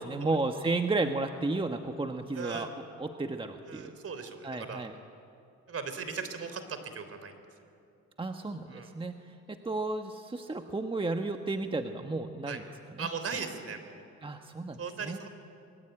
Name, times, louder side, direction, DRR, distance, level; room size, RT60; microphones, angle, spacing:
voice 1, 0.0-4.0 4.4-4.9 8.2-12.7 12.9-13.1 14.2-15.2, right 3 dB, 15° right, 5 dB, 1.3 m, -33 dB
voice 2, 2.4-2.7 3.7-4.9 5.7-7.4 8.7-8.9 12.5-12.6 13.0-14.0 14.8-15.3, right 5 dB, 50° right, 9 dB, 3.5 m, -38 dB
26.0 x 22.0 x 9.1 m, 2.5 s
cardioid pair, 90°, 30 cm